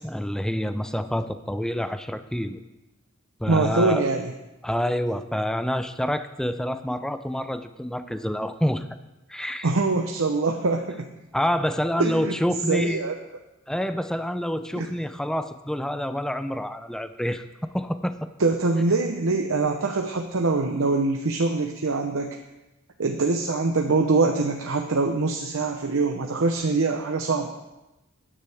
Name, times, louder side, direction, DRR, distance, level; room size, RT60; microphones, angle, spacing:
voice 1, 0.0-2.6 3.4-4.1 4.6-8.9 9.3-9.7 11.3-13.0 13.7-17.4 17.7-18.2, equal, 5° left, 10 dB, 0.5 m, -27 dB
voice 2, 3.5-4.3 9.6-11.1 12.0-12.3 12.7-13.1 14.8-14.9 18.4-22.4 23.0-27.5, right 3 dB, 85° right, 3 dB, 0.8 m, -23 dB
14.5 x 10.0 x 3.5 m, 1.0 s
head